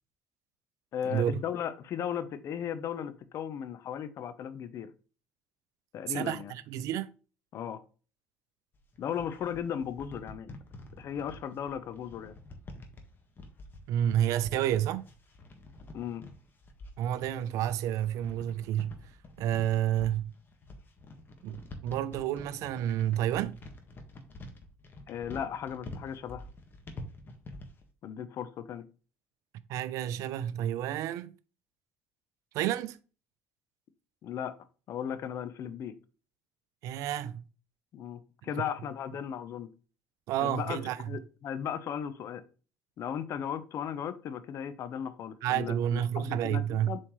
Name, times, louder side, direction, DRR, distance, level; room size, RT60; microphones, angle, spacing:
voice 1, 0.9-4.9 5.9-6.5 7.5-7.8 9.0-10.5 11.0-12.4 15.9-16.3 25.1-26.5 28.0-28.9 34.2-34.5 34.9-36.0 37.9-39.7 40.4-40.8 41.1-42.4 43.0-47.0, left 8 dB, 55° left, 0.8 m, -36 dB
voice 2, 6.1-7.1 13.9-15.0 17.0-18.9 19.4-20.3 21.4-23.6 29.7-31.3 32.5-33.0 36.8-37.4 40.3-41.0 45.4-47.0, right 11 dB, 70° right, 0.6 m, -30 dB
sound 1, 8.7-27.8, left 2 dB, 35° left, 1.6 m, -47 dB
7.4 x 4.4 x 3.2 m
supercardioid pair, 85°, 6 cm